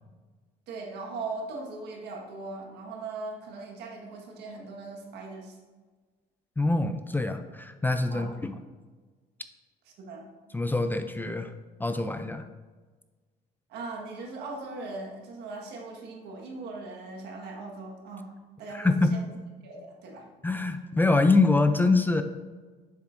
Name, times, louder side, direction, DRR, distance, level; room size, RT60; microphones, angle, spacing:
voice 1, 0.7-5.6 8.1-8.3 10.0-10.3 13.7-18.3 18.6-19.2 19.6-20.3, right 3 dB, 80° right, 0 dB, 1.5 m, -39 dB
voice 2, 6.6-8.5 10.5-11.5 11.8-12.4 18.7-19.2 20.4-22.2, left 3 dB, 10° left, 8 dB, 0.4 m, -24 dB
7.2 x 7.1 x 2.6 m, 1.4 s
cardioid pair, 110°, 17 cm